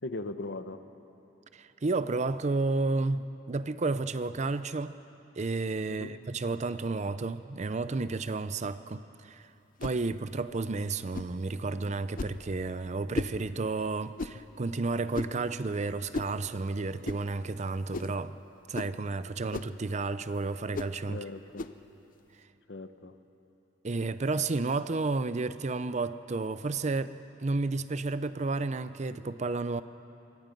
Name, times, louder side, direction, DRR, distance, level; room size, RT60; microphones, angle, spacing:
voice 1, 0.0-0.8 5.9-6.1 21.1-21.7 22.7-23.1, left 2 dB, 70° left, 9 dB, 1.0 m, -39 dB
voice 2, 1.5-5.0 5.4-9.4 9.8-18.4 18.7-21.2 23.8-29.8, right 3 dB, 40° right, 14 dB, 0.5 m, -32 dB
sound 1, 9.8-10.0 11.1-11.4 12.2-12.4 13.1-13.4 14.2-14.4 15.1-15.4 16.1-16.4 17.0-17.2 17.9-18.2 18.7-19.0 19.5-19.8 20.7-21.0 21.6-21.8, left 3 dB, 50° left, 0.6 m, -35 dB
24.5 x 23.5 x 5.3 m, 2.9 s
head